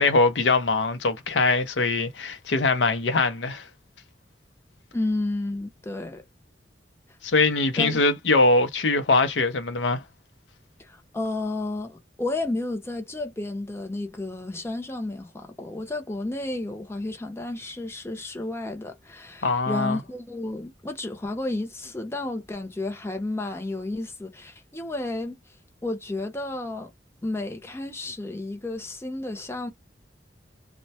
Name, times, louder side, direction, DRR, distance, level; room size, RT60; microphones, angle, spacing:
voice 1, 0.0-3.6 7.2-10.0 19.4-20.0, left 3 dB, 85° left, 0.6 m, -22 dB
voice 2, 4.9-6.2 7.8-8.0 10.9-25.4 25.8-26.9 27.2-29.7, left 2 dB, 15° left, 0.6 m, -32 dB
2.2 x 2.1 x 2.7 m
head